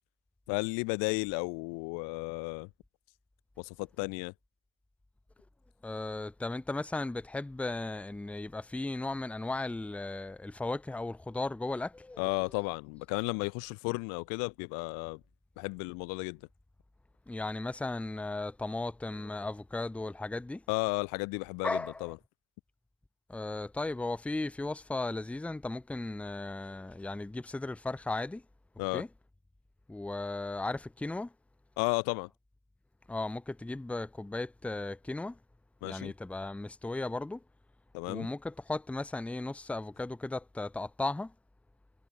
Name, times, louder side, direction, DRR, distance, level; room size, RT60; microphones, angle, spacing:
voice 1, 0.5-2.7 3.6-4.3 12.2-15.2 15.6-16.4 20.7-22.2 28.8-29.0 31.8-32.3 35.8-36.1 37.9-38.3, left 33 dB, 70° left, 0.9 m, -33 dB
voice 2, 5.8-12.4 17.3-20.6 21.6-22.0 23.3-28.4 28.9-29.1 29.9-31.3 33.1-35.4 35.8-37.4 38.1-41.3, left 2 dB, 5° left, 0.8 m, -36 dB
cardioid pair, 150°, 35 cm